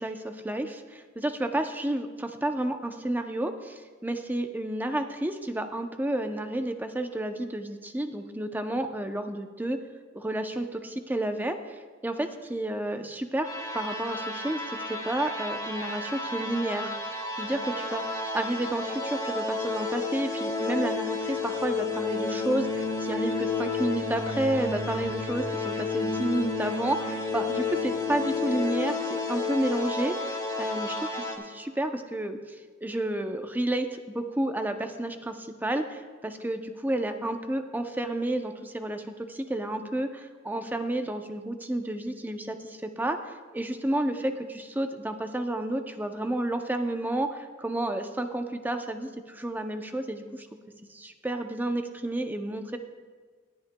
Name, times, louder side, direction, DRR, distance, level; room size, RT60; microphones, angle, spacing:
voice 1, 0.0-9.8 10.1-13.5 13.7-16.9 17.4-18.0 18.3-32.4 32.8-50.5 50.9-52.8, right 1 dB, 10° right, 6 dB, 0.5 m, -31 dB
sound 1, 13.4-31.4, left 3 dB, 20° left, 1.1 m, -31 dB
19.5 x 10.0 x 2.2 m, 1.5 s
head